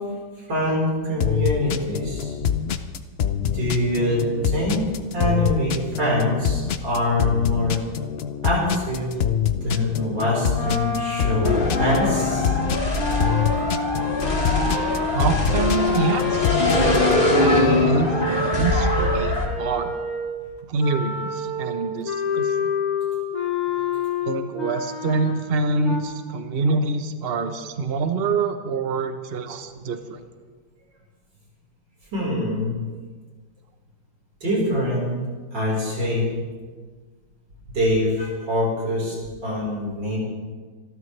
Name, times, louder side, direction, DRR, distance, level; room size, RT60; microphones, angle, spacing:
voice 1, 0.5-2.3 3.4-7.8 8.4-9.1 9.6-12.5 32.1-32.8 34.4-35.1 35.5-36.3 37.7-39.2 39.4-40.2, left 1 dB, 70° right, -3 dB, 5.5 m, -24 dB
sound 1, 1.2-17.1, left 9 dB, 90° left, 0.5 m, -25 dB
sound 2, 10.5-20.4 20.8-26.0, left 4 dB, 50° left, 3.0 m, -27 dB
sound 3, 11.4-19.5, left 2 dB, 30° left, 2.2 m, -23 dB
voice 2, 15.1-16.7 17.3-19.9 20.6-22.5 23.8-30.2, right 4 dB, 40° right, 8 dB, 1.0 m, -26 dB
26.5 x 13.5 x 3.4 m, 1.5 s
omnidirectional pair, 2.0 m